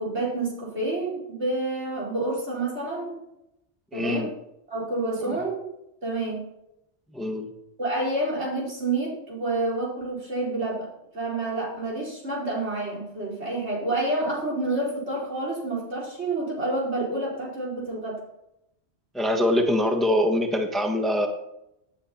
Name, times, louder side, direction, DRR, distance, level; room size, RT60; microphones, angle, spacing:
voice 1, 0.0-3.2 3.9-4.3 4.7-5.7 6.0-6.5 7.8-10.9 11.1-18.2, right 2 dB, 75° right, -3 dB, 4.8 m, -28 dB
voice 2, 3.9-4.3 5.2-5.4 7.1-7.5 19.1-21.3, left 1 dB, ahead, 4 dB, 1.3 m, -24 dB
17.5 x 10.0 x 4.3 m, 0.84 s
omnidirectional pair, 1.2 m